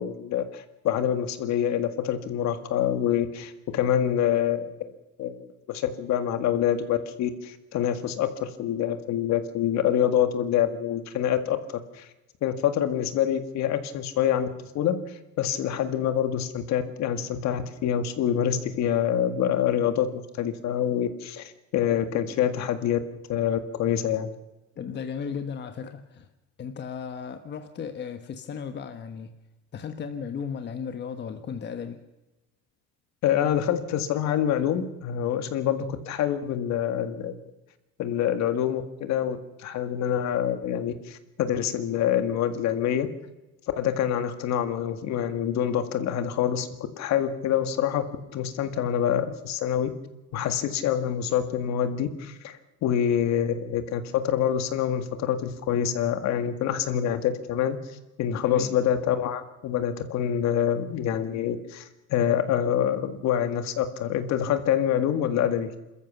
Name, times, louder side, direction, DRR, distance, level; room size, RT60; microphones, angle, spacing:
voice 1, 0.0-4.7 5.2-11.6 11.9-12.1 12.4-14.5 14.7-23.0 23.3-24.3 33.2-37.4 38.0-43.1 43.8-46.7 47.0-48.0 48.3-49.9 50.3-57.8 58.2-65.7, left 9 dB, 60° left, 9 dB, 1.9 m, -26 dB
voice 2, 24.8-26.3 26.6-29.3 29.7-32.1 58.4-58.7, left 6 dB, 35° left, 7 dB, 1.3 m, -35 dB
27.0 x 14.0 x 7.3 m, 1.1 s
cardioid pair, 135°, 31 cm